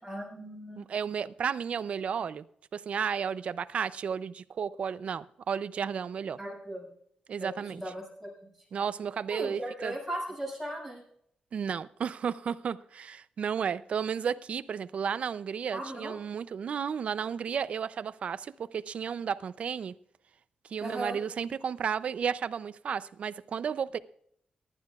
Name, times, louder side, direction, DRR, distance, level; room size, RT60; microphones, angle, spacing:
voice 1, 0.0-0.8 6.4-6.9 7.4-8.5 9.3-11.0 15.7-16.1 20.8-21.2, right 1 dB, ahead, 6.2 m, -37 dB
voice 2, 0.8-2.4 2.7-6.4 7.3-7.8 8.7-9.9 11.5-19.9 20.7-24.0, right 7 dB, 50° right, 0.5 m, -33 dB
23.0 x 11.5 x 2.4 m
wide cardioid pair, 175°, 3 cm